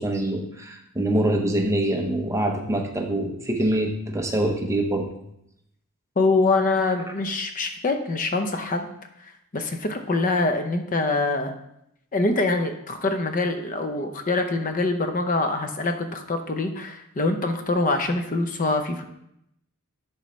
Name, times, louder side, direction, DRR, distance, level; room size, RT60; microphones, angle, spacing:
voice 1, 0.0-5.1, right 1 dB, 15° right, 2 dB, 0.7 m, -24 dB
voice 2, 6.2-8.9 9.2-11.5 12.1-19.1, left 2 dB, 35° left, 6 dB, 0.6 m, -24 dB
11.0 x 4.8 x 3.1 m, 0.78 s
head